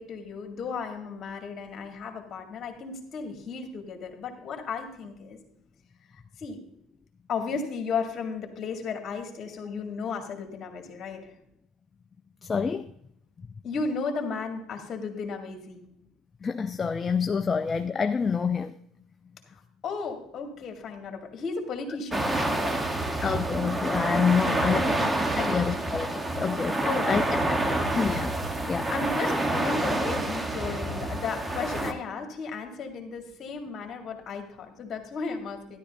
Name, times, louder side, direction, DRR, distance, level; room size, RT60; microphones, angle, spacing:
voice 1, 0.0-5.4 6.4-6.6 7.3-11.3 13.6-15.8 19.5-23.1 24.4-25.1 25.4-26.0 26.8-28.1 28.9-35.8, left 5 dB, 50° left, 3 dB, 2.0 m, -35 dB
voice 2, 12.4-12.9 16.4-18.8 23.2-24.8 25.3-27.2 27.9-28.3 28.7-28.9, left 6 dB, 30° left, 8 dB, 0.4 m, -27 dB
sound 1, 22.1-31.9, right 1 dB, 20° right, 1.1 m, -28 dB
12.5 x 11.0 x 2.7 m, 0.74 s
supercardioid pair, 80°, 0 cm